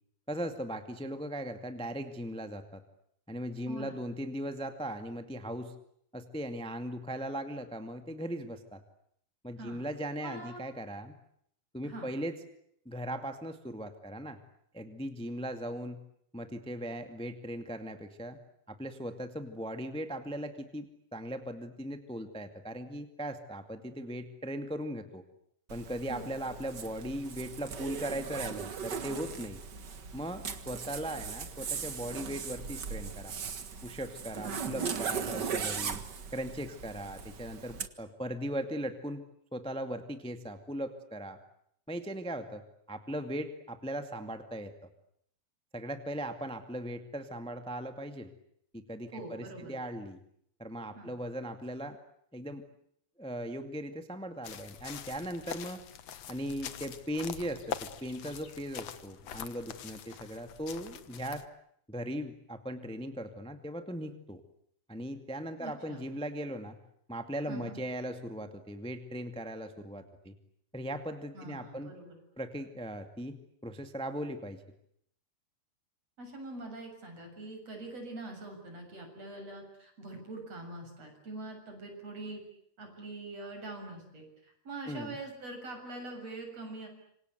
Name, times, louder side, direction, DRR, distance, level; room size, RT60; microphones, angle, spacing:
voice 1, 0.3-2.8 3.3-5.7 6.1-8.8 9.4-11.1 11.7-12.3 12.8-14.4 14.7-16.0 16.3-18.4 18.7-25.2 25.7-29.6 30.1-33.3 33.8-36.0 36.3-39.2 39.5-41.4 41.9-42.6 42.9-44.7 45.7-48.3 48.7-50.2 50.6-52.0 52.3-52.6 53.2-55.8 56.3-61.4 61.9-64.4 64.9-66.8 67.1-70.3 70.7-71.9 72.4-73.4 73.6-74.6 84.8-85.2, equal, 5° left, 8 dB, 0.7 m, -38 dB
voice 2, 3.7-4.0 9.6-9.9 10.2-10.6 11.8-12.1 26.1-26.3 34.4-35.7 49.1-49.8 50.9-51.1 65.6-66.1 67.5-67.8 71.3-72.2 76.2-82.4 82.8-86.9, right 2 dB, 40° right, 4 dB, 8.3 m, -44 dB
Zipper (clothing), 25.7-37.9, right 6 dB, 70° right, 1.0 m, -39 dB
sound 1, 54.4-61.5, left 9 dB, 60° left, 1.9 m, -44 dB
27.5 x 25.5 x 8.1 m, 0.70 s
omnidirectional pair, 4.5 m